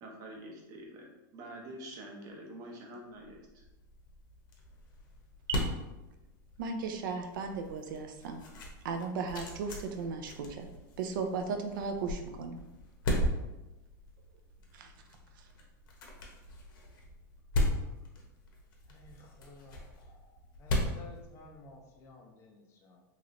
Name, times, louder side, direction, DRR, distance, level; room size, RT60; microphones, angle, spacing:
voice 1, 0.0-3.6, right 1 dB, 30° right, 0 dB, 0.6 m, -47 dB
sound 1, 3.2-22.0, left 1 dB, 75° left, 0.8 m, -38 dB
voice 2, 6.6-8.4 8.8-10.7 11.0-12.6 14.7-14.9, right 5 dB, 70° right, 5 dB, 0.4 m, -36 dB
voice 3, 18.9-23.0, left 2 dB, 25° left, 1 dB, 0.3 m, -54 dB
3.1 x 2.9 x 2.5 m, 1.0 s
supercardioid pair, 160°, 11 cm